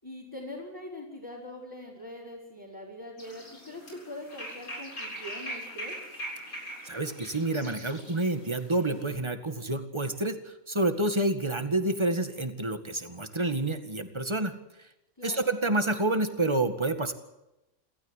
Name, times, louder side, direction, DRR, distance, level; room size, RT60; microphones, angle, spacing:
voice 1, 0.0-6.0 15.2-15.5, left 1 dB, 15° left, -6 dB, 5.3 m, -42 dB
sound 1, 3.2-9.1, equal, 85° left, 8.1 m, -42 dB
voice 2, 6.8-14.5 15.2-17.1, right 2 dB, 20° right, 8 dB, 1.9 m, -28 dB
29.0 x 13.5 x 8.2 m, 0.94 s
omnidirectional pair, 1.5 m